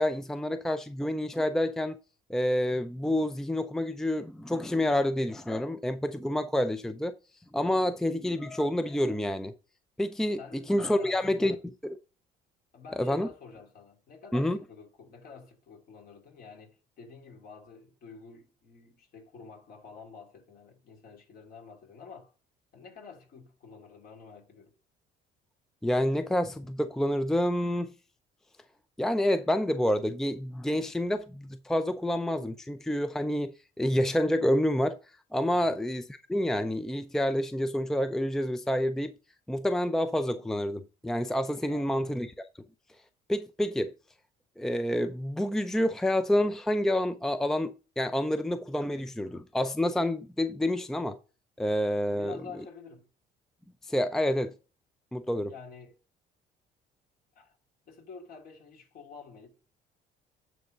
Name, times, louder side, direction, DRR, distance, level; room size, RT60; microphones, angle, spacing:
voice 1, 0.0-2.0 2.3-7.1 7.5-9.5 10.0-11.6 13.0-13.3 14.3-14.6 25.8-27.9 29.0-35.0 35.3-36.0 36.3-39.1 39.5-42.3 43.3-43.9 44.6-51.2 51.6-52.4 53.9-54.5 55.1-55.5, left 1 dB, 5° left, 0.5 m, -28 dB
voice 2, 10.4-11.6 12.7-22.3 22.7-24.7 35.5-35.8 41.7-42.2 52.1-53.1 55.5-56.0 57.3-57.6 57.9-59.6, left 5 dB, 60° left, 2.8 m, -49 dB
9.1 x 3.5 x 6.6 m
cardioid pair, 110°, 17 cm